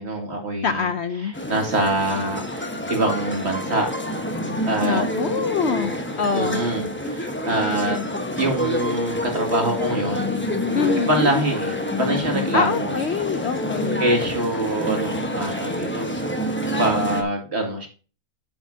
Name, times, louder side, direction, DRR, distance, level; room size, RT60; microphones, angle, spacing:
voice 1, 0.0-0.9 1.2-3.9 4.7-5.1 6.3-8.0 8.4-10.3 11.0-12.9 14.0-17.9, right 1 dB, 45° right, 2.5 m, -25 dB
voice 2, 0.6-1.3 4.8-6.6 10.7-11.3 12.5-14.0, left 5 dB, 60° left, 0.8 m, -24 dB
sound 1, 1.3-17.2, left 1 dB, 10° left, 1.0 m, -27 dB
9.8 x 7.4 x 2.7 m
omnidirectional pair, 1.5 m